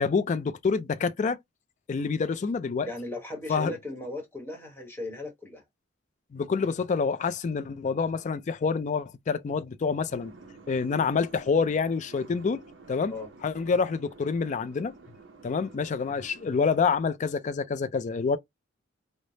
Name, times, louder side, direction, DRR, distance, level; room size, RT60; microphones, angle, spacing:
voice 1, 0.0-1.4 1.9-2.9 3.5-3.7 6.3-10.3 10.7-12.6 12.9-13.1 13.4-14.9 15.4-18.4, left 5 dB, 40° left, 0.3 m, -27 dB
voice 2, 2.8-5.6 13.1-13.3, left 2 dB, 10° left, 1.0 m, -37 dB
sound 1, 10.1-17.0, right 3 dB, 70° right, 0.6 m, -50 dB
3.2 x 2.0 x 2.6 m
head